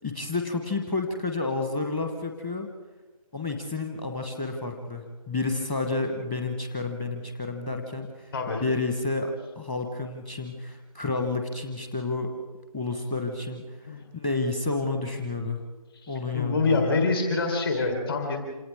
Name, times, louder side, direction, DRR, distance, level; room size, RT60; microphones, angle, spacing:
voice 1, 0.0-2.7 3.3-8.3 8.6-12.4 12.7-15.6 16.1-17.0, left 3 dB, 15° left, 4 dB, 1.1 m, -30 dB
voice 2, 8.3-8.6 13.9-14.0 15.1-15.2 16.0-18.4, left 3 dB, 40° left, 2 dB, 3.9 m, -26 dB
27.0 x 27.0 x 3.6 m, 1.2 s
figure-of-eight pair, 155°, 19 cm